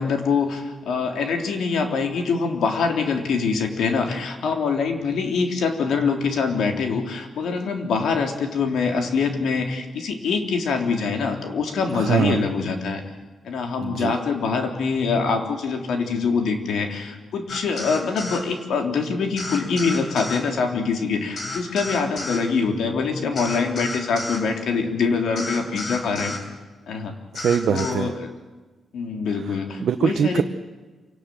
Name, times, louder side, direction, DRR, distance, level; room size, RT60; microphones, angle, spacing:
voice 1, 0.0-13.0 13.4-26.3 26.9-27.1 27.7-28.3 28.9-30.4, left 5 dB, 80° left, 4 dB, 3.3 m, -24 dB
voice 2, 12.1-12.4 13.8-14.1 27.4-28.1 29.8-30.4, right 7 dB, 65° right, 7 dB, 0.9 m, -22 dB
sound 1, 17.5-18.4 19.4-20.4 21.4-22.4 23.4-24.4 25.4-26.4 27.3-27.9, left 2 dB, 50° left, 3.9 m, -32 dB
27.0 x 18.5 x 7.7 m, 1.3 s
cardioid pair, 130°, 0 cm